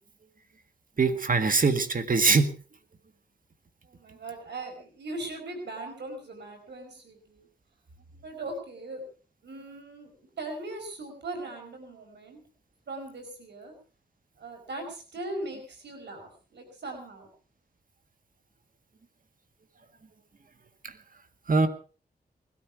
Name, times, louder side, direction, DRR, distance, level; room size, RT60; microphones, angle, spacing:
voice 1, 1.0-2.6 20.8-20.9 21.5-21.7, right 4 dB, 55° right, 8 dB, 1.9 m, -23 dB
voice 2, 3.8-7.5 8.2-9.0 9.4-12.4 12.9-13.7 14.4-17.3, right 2 dB, 90° right, 4 dB, 4.8 m, -39 dB
20.0 x 13.0 x 4.7 m, 0.39 s
cardioid pair, 65°, 17 cm